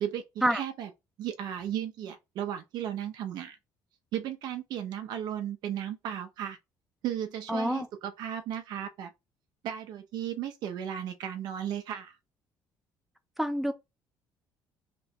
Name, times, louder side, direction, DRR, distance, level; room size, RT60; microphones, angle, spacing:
voice 1, 0.5-0.9 1.2-3.6 4.1-6.6 7.0-9.1 9.6-12.2, right 10 dB, 70° right, 0.5 m, -35 dB
voice 2, 7.5-7.9 13.4-13.7, equal, 5° right, 0.5 m, -27 dB
2.9 x 2.2 x 4.2 m
cardioid pair, 130°, 7 cm